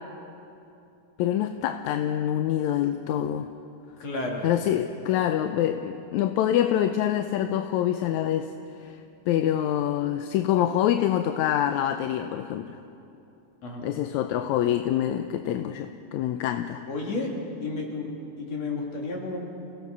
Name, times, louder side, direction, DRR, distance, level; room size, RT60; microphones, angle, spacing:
voice 1, 1.2-3.5 4.4-8.5 8.8-9.0 9.3-12.8 13.8-16.8, left 11 dB, 80° left, 7 dB, 1.9 m, -25 dB
voice 2, 4.0-4.5 13.6-13.9 16.9-17.3 17.6-18.1 18.4-19.4, left 3 dB, 60° left, -1 dB, 4.0 m, -31 dB
28.5 x 17.5 x 6.1 m, 2.8 s
omnidirectional pair, 3.4 m